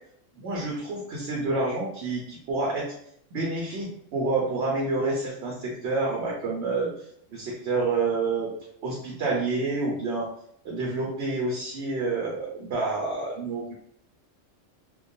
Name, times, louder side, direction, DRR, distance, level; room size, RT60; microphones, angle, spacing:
voice 1, 0.4-3.0 3.3-8.5 8.8-10.3 10.6-13.7, right 3 dB, 65° right, -2 dB, 0.8 m, -28 dB
2.2 x 2.1 x 2.6 m, 0.69 s
omnidirectional pair, 1.3 m